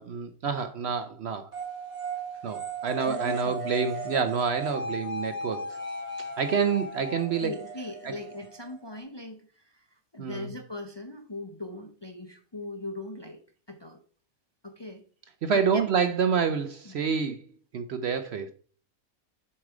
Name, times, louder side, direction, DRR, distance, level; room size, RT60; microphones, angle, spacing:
voice 1, 0.0-1.5 2.4-5.8 6.4-7.5 8.0-8.1 10.2-10.5 15.4-17.4 17.7-18.5, right 6 dB, 60° right, 0.8 m, -28 dB
sound 1, 1.5-9.0, right 2 dB, 25° right, 3.0 m, -36 dB
voice 2, 3.1-3.6 7.4-13.4 13.7-14.0 14.6-15.0 15.5-15.8 16.8-16.9, left 2 dB, 25° left, 0.6 m, -40 dB
7.3 x 4.9 x 4.8 m
omnidirectional pair, 1.5 m